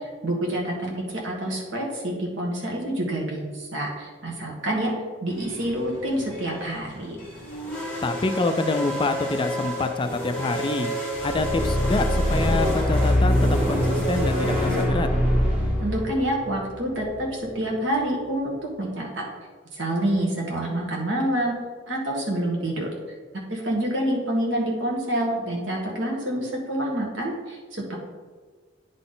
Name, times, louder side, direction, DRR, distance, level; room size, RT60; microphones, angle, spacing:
voice 1, 0.2-4.9 5.2-7.2 15.8-18.5 18.8-19.2 19.7-21.5 21.9-22.9 23.5-28.0, right 1 dB, 80° right, -1 dB, 1.7 m, -27 dB
sound 1, 5.3-14.8, equal, 5° left, 1.9 m, -32 dB
voice 2, 8.0-10.9 11.2-15.1, left 2 dB, 25° left, 8 dB, 0.4 m, -26 dB
sound 2, 11.1-17.5, equal, 10° right, 2.0 m, -23 dB
9.7 x 4.0 x 3.8 m, 1.4 s
head